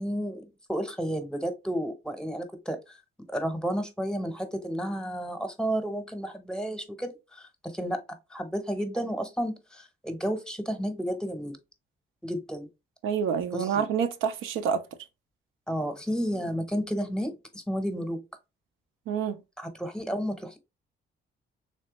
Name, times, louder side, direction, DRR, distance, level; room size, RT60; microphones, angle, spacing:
voice 1, 0.0-3.0 3.3-8.0 8.3-11.6 12.2-12.7 13.5-13.8 15.7-18.2 19.6-20.6, equal, 5° left, 0.8 m, -32 dB
voice 2, 13.0-14.8 19.1-19.4, right 7 dB, 85° right, 0.5 m, -27 dB
3.2 x 3.2 x 2.9 m
cardioid pair, 90°, 20 cm